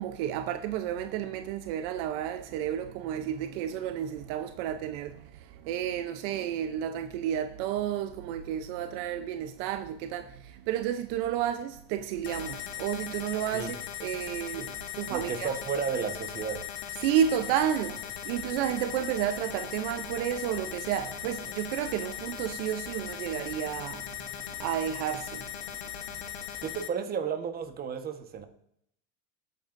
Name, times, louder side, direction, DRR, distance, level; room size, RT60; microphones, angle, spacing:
voice 1, 0.0-15.6 17.0-25.9, right 10 dB, 70° right, 0.8 m, -31 dB
sound 1, 12.2-26.9, left 11 dB, 85° left, 1.2 m, -39 dB
voice 2, 15.1-16.6 26.6-28.5, right 6 dB, 30° right, 1.3 m, -33 dB
18.0 x 9.0 x 2.6 m
supercardioid pair, 120°, 29 cm